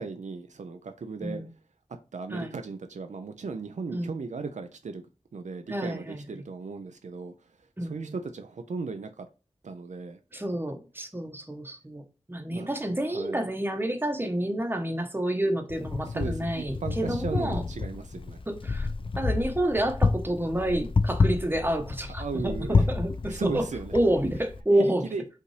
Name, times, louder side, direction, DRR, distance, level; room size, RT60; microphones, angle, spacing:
voice 1, 0.0-1.4 2.1-5.0 5.3-7.3 7.8-9.3 9.6-10.2 12.5-12.7 13.0-13.4 16.0-18.4 22.2-22.9 23.2-24.0 24.8-25.2, right 4 dB, 75° right, 0.5 m, -36 dB
voice 2, 5.7-6.4 7.8-8.2 10.3-12.0 12.3-17.6 18.5-18.9 19.2-23.6 23.9-25.0, right 1 dB, 15° right, 0.9 m, -29 dB
Wind, 15.7-24.6, left 4 dB, 45° left, 0.4 m, -29 dB
5.3 x 2.5 x 3.2 m
cardioid pair, 40°, 12 cm